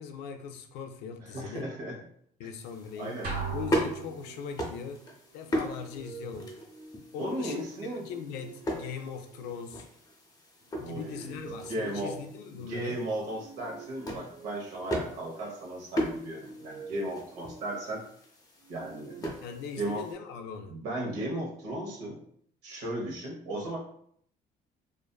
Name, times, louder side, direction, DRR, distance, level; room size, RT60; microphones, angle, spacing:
voice 1, 0.0-1.7 2.4-3.2 3.5-5.0 5.3-6.5 7.1-9.9 10.8-13.0 19.4-20.8, left 6 dB, 90° left, 6 dB, 0.4 m, -40 dB
voice 2, 1.3-1.9 3.0-3.3 7.2-8.0 10.8-12.1 12.5-18.0 18.7-19.3 19.8-20.0 20.7-22.2 22.6-23.8, right 1 dB, 90° right, -1 dB, 0.9 m, -35 dB
sound 1, 2.6-20.2, equal, 20° left, 0.6 m, -38 dB
sound 2, 3.2-4.7, right 4 dB, 60° right, 1.2 m, -36 dB
sound 3, 5.3-7.4 7.9-10.0 10.6-12.8 13.3-15.3 16.0-18.1 18.6-20.6, right 4 dB, 45° right, 0.4 m, -49 dB
2.5 x 2.5 x 2.2 m, 0.65 s
cardioid pair, 110°, 17 cm